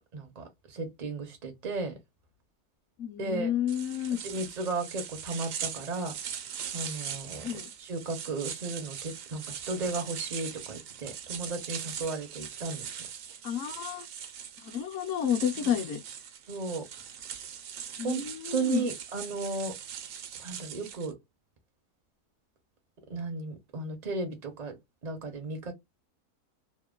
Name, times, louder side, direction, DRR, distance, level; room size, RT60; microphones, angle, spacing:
voice 1, 0.1-1.9 3.2-3.5 4.2-6.1 6.7-7.5 7.8-12.9 15.6-15.7 16.5-16.8 18.0-19.7 20.4-21.1 23.1-24.8 25.0-25.7, right 3 dB, 45° right, 0.5 m, -35 dB
voice 2, 3.0-4.2 7.4-7.7 13.4-14.0 14.6-16.0 18.0-18.9, left 9 dB, 60° left, 0.9 m, -30 dB
sound 1, 3.7-21.1, right 8 dB, 65° right, 0.9 m, -41 dB
2.9 x 2.1 x 2.3 m
omnidirectional pair, 1.7 m